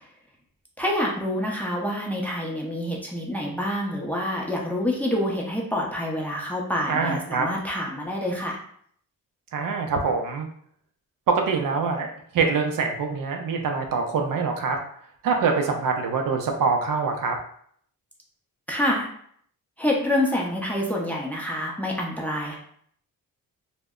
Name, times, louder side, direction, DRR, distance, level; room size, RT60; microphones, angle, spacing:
voice 1, 0.8-8.6 18.7-19.1 19.8-22.6, left 1 dB, 5° left, -2 dB, 0.6 m, -27 dB
voice 2, 6.9-7.5 9.5-10.5 11.3-12.1 12.3-14.8 15.2-17.4, right 4 dB, 60° right, 3 dB, 0.5 m, -24 dB
2.1 x 2.0 x 3.5 m, 0.62 s
cardioid pair, 90°, 36 cm